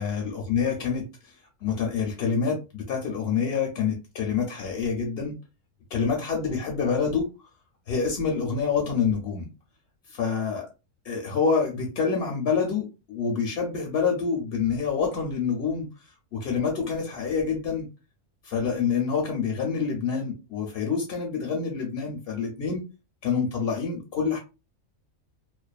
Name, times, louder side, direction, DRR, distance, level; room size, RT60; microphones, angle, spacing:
voice 1, 0.0-1.3 1.6-5.3 5.9-7.3 7.9-9.5 10.1-10.7 11.0-17.9 18.4-22.8 23.2-24.4, left 5 dB, 60° left, 1 dB, 0.7 m, -27 dB
2.4 x 2.2 x 2.3 m, 0.30 s
omnidirectional pair, 1.4 m